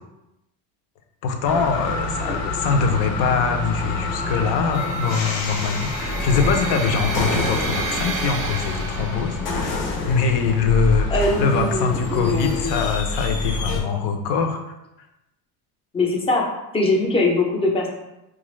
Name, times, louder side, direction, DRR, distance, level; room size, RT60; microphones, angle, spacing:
voice 1, 1.2-14.6, left 5 dB, 65° left, 5 dB, 0.7 m, -23 dB
sound 1, 1.4-13.8, left 2 dB, 85° left, 1.1 m, -27 dB
sound 2, 4.7-9.8, right 3 dB, 30° right, 0.5 m, -31 dB
voice 2, 11.1-12.8 15.9-16.5 16.7-17.9, left 2 dB, 15° left, 0 dB, 0.5 m, -22 dB
4.5 x 2.5 x 3.1 m, 0.93 s
cardioid pair, 140°, 45 cm